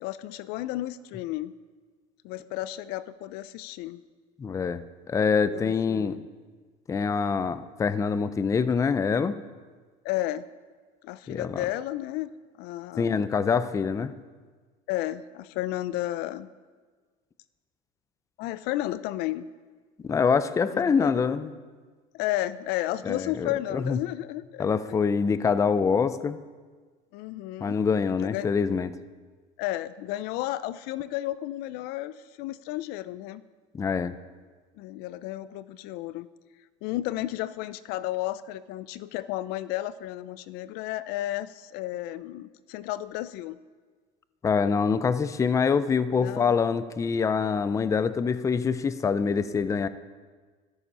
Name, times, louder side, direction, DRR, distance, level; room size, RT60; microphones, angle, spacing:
voice 1, 0.0-1.5 2.2-4.0 5.5-6.2 10.0-10.4 11.0-12.3 12.6-13.2 14.9-16.5 18.4-19.5 20.7-21.2 22.1-24.6 27.1-27.8 28.2-28.5 29.6-33.4 34.8-36.3 36.8-43.6 46.2-46.6, left 15 dB, 65° left, 16 dB, 0.5 m, -33 dB
voice 2, 4.4-6.2 6.9-9.4 11.3-11.6 13.0-14.1 20.0-21.5 23.0-24.0 24.6-26.4 27.6-29.0 33.7-34.1 44.4-49.9, left 5 dB, 15° left, 14 dB, 0.5 m, -25 dB
13.0 x 13.0 x 5.5 m, 1.5 s
supercardioid pair, 125°, 18 cm